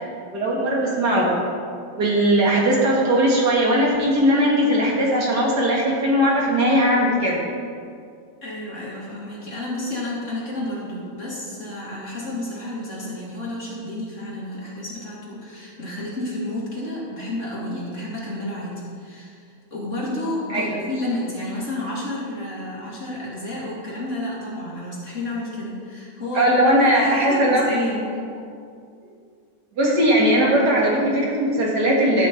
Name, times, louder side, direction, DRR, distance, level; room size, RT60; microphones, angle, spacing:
voice 1, 0.3-1.3 1.9-7.4 20.5-20.7 26.3-27.8 29.8-32.3, equal, 40° right, -3 dB, 1.9 m, -19 dB
voice 2, 8.4-19.4 19.7-26.5 26.9-28.2, left 1 dB, 25° left, -6 dB, 2.2 m, -30 dB
14.5 x 6.4 x 4.4 m, 2.3 s
omnidirectional pair, 3.4 m